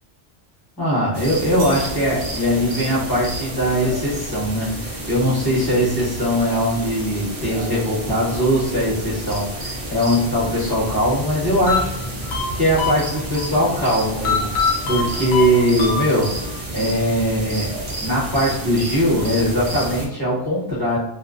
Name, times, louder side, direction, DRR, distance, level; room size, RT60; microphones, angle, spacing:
voice 1, 0.8-11.9 12.5-21.0, equal, 20° left, -9 dB, 0.9 m, -21 dB
sound 1, 1.1-20.1, right 1 dB, 40° right, 0.5 m, -30 dB
sound 2, 1.6-3.0, right 1 dB, 70° right, 0.8 m, -39 dB
sound 3, 11.7-13.5 14.2-16.5, left 6 dB, 70° left, 0.8 m, -24 dB
2.4 x 2.1 x 2.4 m, 0.87 s
omnidirectional pair, 1.2 m